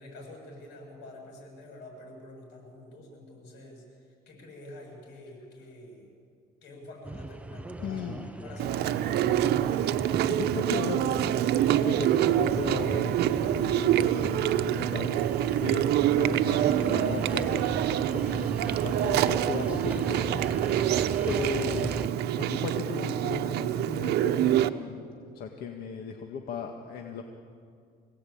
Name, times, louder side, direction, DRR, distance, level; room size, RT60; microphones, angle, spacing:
voice 1, 0.0-6.1 6.6-8.1 8.4-9.8, left 1 dB, 90° left, 1 dB, 7.9 m, -47 dB
sound 1, 7.0-22.1, right 1 dB, 10° right, 0.7 m, -39 dB
voice 2, 7.8-8.3 10.0-11.4 11.7-13.1 13.4-18.5 18.8-20.9 21.2-21.9 22.3-25.0 25.3-27.2, left 6 dB, 65° left, 3 dB, 1.9 m, -37 dB
Chewing mastication, 8.6-24.7, right 12 dB, 75° right, 0.9 m, -26 dB
26.0 x 17.5 x 8.8 m, 2.2 s
cardioid pair, 110°, 17 cm